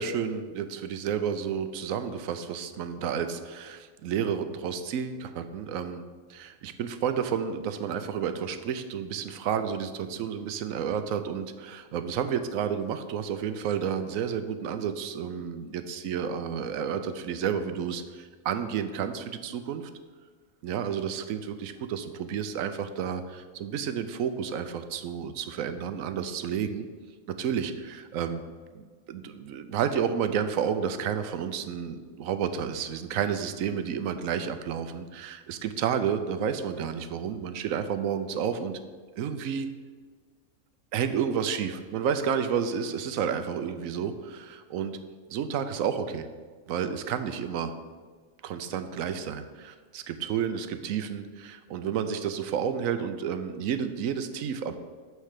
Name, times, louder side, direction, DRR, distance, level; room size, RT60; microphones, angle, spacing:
voice 1, 0.0-19.9 20.6-26.9 27.4-28.4 28.7-38.8 39.2-39.7 40.9-45.0 45.3-46.3 46.7-47.7 48.4-54.8, right 7 dB, 85° right, 10 dB, 1.0 m, -31 dB
9.4 x 3.3 x 6.6 m, 1.5 s
omnidirectional pair, 1.4 m